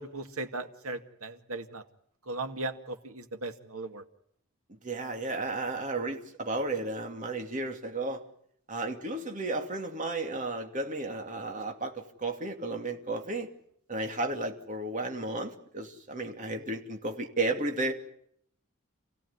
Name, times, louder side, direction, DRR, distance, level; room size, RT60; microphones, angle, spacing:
voice 1, 0.0-1.8 2.3-4.0, right 2 dB, 90° right, 7 dB, 2.1 m, -37 dB
voice 2, 4.7-8.2 8.7-13.5 13.9-17.9, right 2 dB, 35° right, 4 dB, 2.7 m, -33 dB
28.5 x 16.5 x 9.7 m, 0.69 s
head